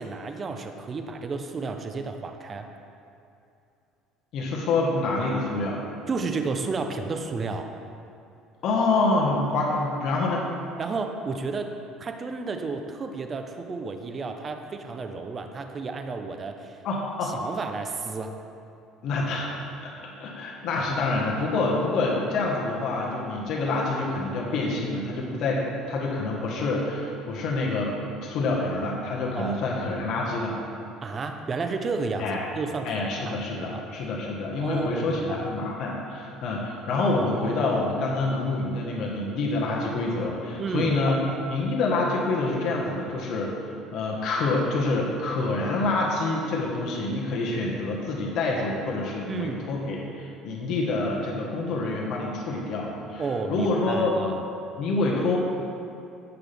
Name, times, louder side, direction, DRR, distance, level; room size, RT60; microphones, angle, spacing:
voice 1, 0.0-2.7 6.1-7.7 10.8-11.7 12.0-16.8 17.2-18.3 29.3-29.7 31.0-32.3 32.5-33.8 34.6-35.5 40.6-41.4 49.3-49.6 53.2-54.4, right 4 dB, 30° right, 5 dB, 0.7 m, -32 dB
voice 2, 4.3-5.8 8.6-10.4 16.8-17.3 19.0-30.6 32.2-32.4 32.8-41.2 41.5-43.5 43.9-53.2 53.5-54.1 54.8-55.4, left 2 dB, 60° left, -3 dB, 1.5 m, -27 dB
15.5 x 5.8 x 3.5 m, 2.6 s
cardioid pair, 125°, 0 cm